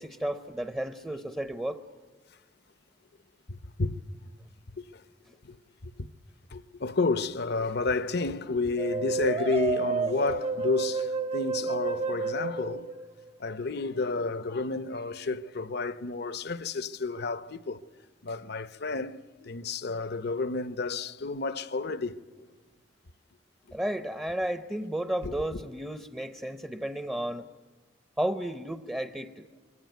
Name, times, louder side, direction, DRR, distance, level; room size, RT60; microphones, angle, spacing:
voice 1, 0.0-1.8 23.7-27.5 28.2-29.5, right 1 dB, 10° right, 0.7 m, -33 dB
voice 2, 3.5-3.9 4.8-5.0 5.4-5.6 5.8-6.1 6.5-12.9 13.4-17.8 18.2-22.2 25.2-25.6, left 3 dB, 60° left, 0.8 m, -31 dB
sound 1, 8.8-13.5, right 4 dB, 35° right, 1.0 m, -30 dB
26.0 x 23.0 x 9.3 m
head